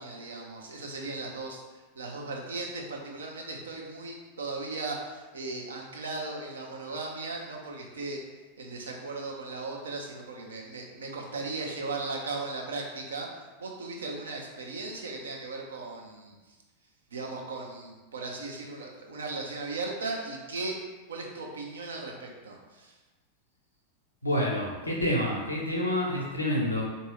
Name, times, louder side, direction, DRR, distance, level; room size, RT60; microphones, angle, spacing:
voice 1, 0.0-8.2 8.6-16.5 17.1-20.8 21.1-23.0, right 3 dB, 70° right, 0 dB, 0.6 m, -37 dB
voice 2, 24.2-26.8, left 1 dB, 85° left, -3 dB, 0.8 m, -28 dB
3.7 x 2.7 x 3.2 m, 1.2 s
figure-of-eight pair, 90°, 0 cm